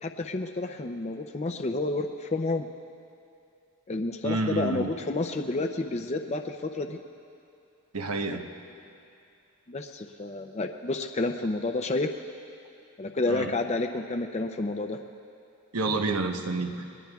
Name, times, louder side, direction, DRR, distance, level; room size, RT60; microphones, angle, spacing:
voice 1, 0.0-2.7 3.9-7.0 9.7-12.1 13.0-15.0, left 2 dB, 30° left, 5 dB, 0.5 m, -30 dB
voice 2, 4.2-4.9 7.9-8.5 13.3-13.5 15.7-16.8, right 3 dB, 80° right, 5 dB, 1.0 m, -29 dB
29.0 x 20.5 x 2.3 m, 2.5 s
head